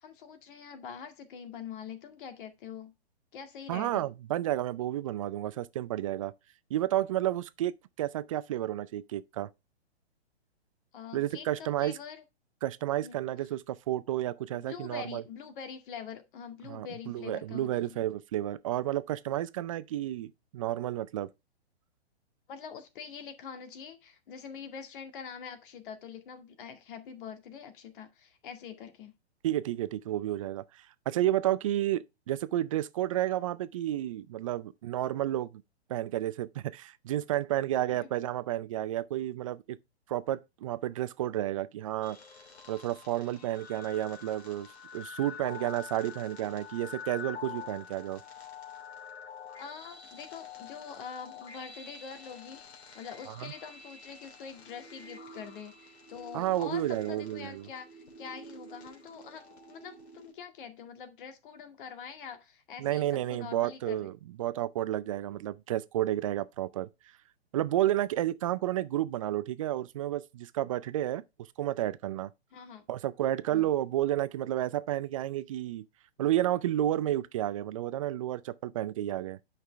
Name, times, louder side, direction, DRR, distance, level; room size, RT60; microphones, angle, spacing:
voice 1, 0.0-2.9 3.3-4.1 10.9-12.2 13.0-13.2 14.5-18.0 22.5-29.1 37.9-38.1 49.6-52.7 52.9-56.8 57.1-64.1 72.5-72.8 73.5-73.7, left 7 dB, 50° left, 2.1 m, -44 dB
voice 2, 3.7-6.3 6.7-7.7 8.0-9.5 11.1-12.0 12.6-15.2 16.7-21.3 29.4-35.5 35.9-39.8 40.1-42.2 42.7-44.7 44.9-48.2 53.3-53.5 56.3-57.7 62.8-66.9 67.5-71.2 71.6-72.3 72.9-75.8 76.2-79.4, right 13 dB, 30° right, 0.4 m, -31 dB
sound 1, 42.0-60.3, left 5 dB, 75° left, 3.1 m, -47 dB
9.4 x 5.9 x 3.4 m
hypercardioid pair, 140°, 33 cm